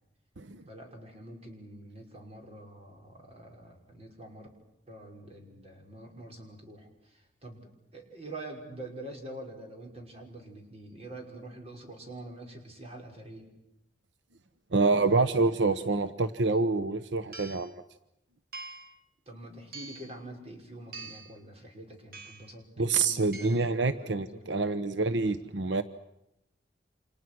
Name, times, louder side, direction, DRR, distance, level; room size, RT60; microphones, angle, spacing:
voice 1, 0.7-4.5 4.9-13.5 19.3-24.7, right 1 dB, 35° right, 2 dB, 5.8 m, -46 dB
voice 2, 14.7-17.7 22.8-25.8, right 3 dB, 85° right, 12 dB, 0.9 m, -27 dB
sound 1, 16.5-16.6 17.3-17.7 18.5-19.0 19.7-20.1 20.9-21.4 22.1-22.5 23.3-23.8, right 3 dB, 55° right, 2.1 m, -45 dB
29.5 x 27.0 x 6.2 m, 0.86 s
head